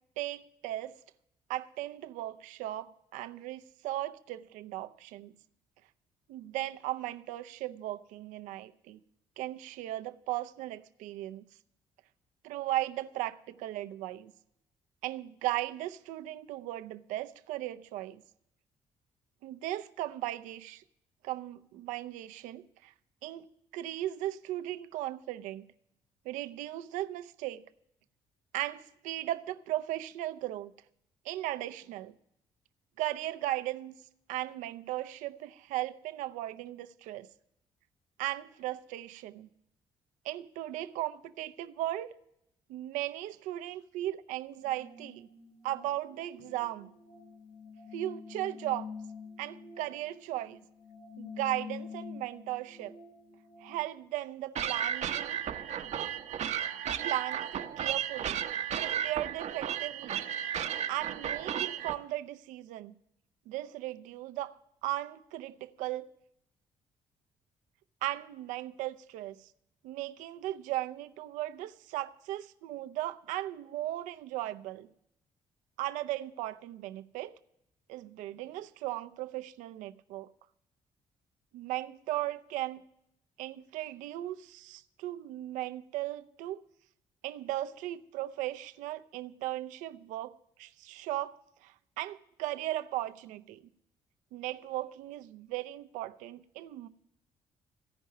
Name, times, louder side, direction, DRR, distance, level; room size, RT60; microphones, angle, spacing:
voice 1, 0.2-1.0 1.5-5.3 6.3-9.0 9.4-11.4 12.4-14.3 15.0-18.2 19.4-20.8 21.2-22.9 23.2-23.5 23.7-25.7 26.2-27.6 28.5-30.7 31.2-32.1 33.0-33.9 34.3-37.3 38.2-39.5 40.2-42.1 42.7-45.3 45.6-46.9 47.9-48.9 49.4-50.6 51.2-52.9 53.6-55.4 57.0-58.5 58.8-60.2 60.9-62.9 63.5-64.5 64.8-66.1 68.0-69.5 69.8-74.9 75.8-77.4 77.9-80.3 81.5-82.8 83.4-86.6 87.2-90.3 90.6-93.6 94.3-96.9, right 14 dB, 80° right, 0.6 m, -37 dB
sound 1, 44.6-53.8, left 5 dB, 65° left, 6.0 m, -47 dB
sound 2, 54.6-62.0, right 9 dB, 60° right, 0.8 m, -34 dB
15.5 x 5.4 x 9.6 m
hypercardioid pair, 55°, 13 cm